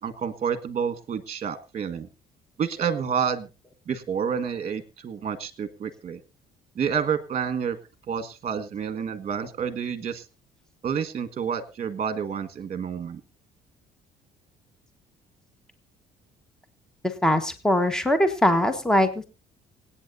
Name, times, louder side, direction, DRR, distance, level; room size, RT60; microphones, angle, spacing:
voice 1, 0.0-2.1 2.6-3.5 3.9-6.2 6.7-7.8 8.1-10.2 10.8-13.2, right 7 dB, 40° right, 10 dB, 1.6 m, -29 dB
voice 2, 17.2-19.2, left 1 dB, 5° left, 9 dB, 1.3 m, -21 dB
26.5 x 8.9 x 2.7 m, 0.28 s
cardioid pair, 110°, 17 cm